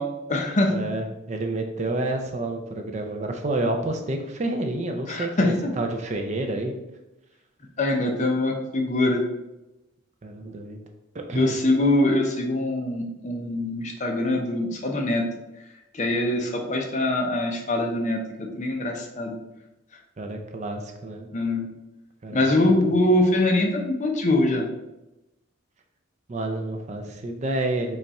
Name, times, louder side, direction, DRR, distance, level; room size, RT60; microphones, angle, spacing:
voice 1, 0.0-0.9 5.1-5.7 7.8-9.2 11.3-15.2 15.9-19.4 21.3-21.7 22.3-24.7, left 1 dB, 35° left, 1 dB, 0.6 m, -23 dB
voice 2, 0.7-6.7 10.2-10.8 11.1-11.6 20.2-21.3 22.2-22.5 22.8-22.9 26.3-28.0, right 2 dB, 35° right, 4 dB, 0.4 m, -29 dB
5.3 x 2.4 x 4.1 m, 0.95 s
head